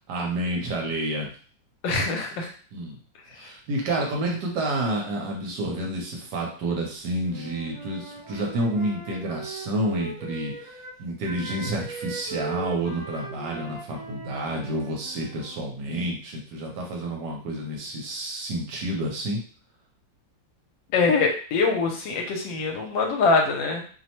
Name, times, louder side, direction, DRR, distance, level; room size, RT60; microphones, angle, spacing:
voice 1, 0.1-1.3 2.7-3.0 3.3-10.5 11.0-19.4, right 1 dB, 70° right, 0 dB, 1.2 m, -29 dB
voice 2, 1.8-2.5 3.4-3.5 20.9-23.8, left 4 dB, 80° left, 3 dB, 1.3 m, -23 dB
Wind instrument woodwind instrument, 7.2-10.9 11.2-15.6, right 4 dB, 30° right, 0.8 m, -39 dB
3.0 x 2.0 x 2.8 m, 0.42 s
omnidirectional pair, 2.1 m